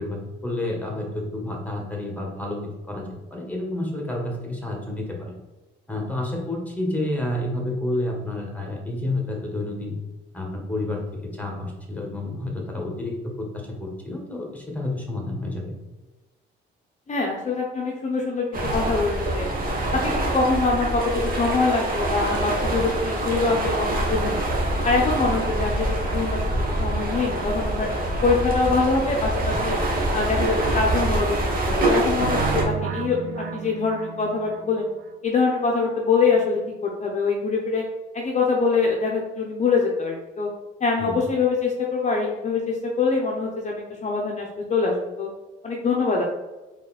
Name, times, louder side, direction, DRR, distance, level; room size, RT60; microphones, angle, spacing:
voice 1, 0.0-2.6 2.9-5.3 5.9-10.0 10.3-13.5 13.8-15.7 41.0-41.2, left 1 dB, 5° left, 0 dB, 1.4 m, -30 dB
voice 2, 17.1-18.5 18.7-19.5 19.9-24.5 24.8-27.9 28.2-29.8 30.1-33.2 33.5-34.9 35.2-37.8 38.1-40.5 40.8-45.3 45.6-46.2, left 4 dB, 35° left, -1 dB, 0.8 m, -24 dB
sound 1, 18.5-32.6, right 1 dB, 45° right, 1.4 m, -25 dB
sound 2, 32.2-35.1, right 8 dB, 70° right, 0.5 m, -32 dB
4.1 x 3.2 x 4.1 m, 1.1 s
cardioid pair, 90°, 20 cm